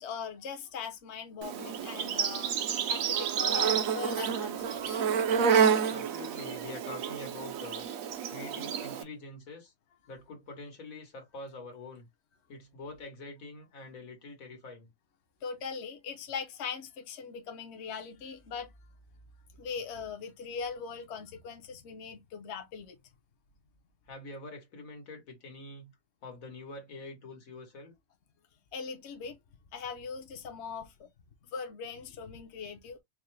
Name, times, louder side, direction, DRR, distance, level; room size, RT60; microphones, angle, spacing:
voice 1, 0.0-2.6 2.9-5.0 15.4-18.7 19.6-23.0 28.7-29.4 29.7-31.1 31.5-33.0, left 6 dB, 60° left, 1.0 m, -40 dB
Insect, 1.4-9.0, right 7 dB, 80° right, 1.1 m, -29 dB
voice 2, 5.9-7.9 8.3-9.7 10.1-12.1 12.5-14.9 24.1-25.9 26.2-27.9, left 3 dB, 85° left, 1.8 m, -45 dB
4.7 x 2.2 x 3.1 m
omnidirectional pair, 1.4 m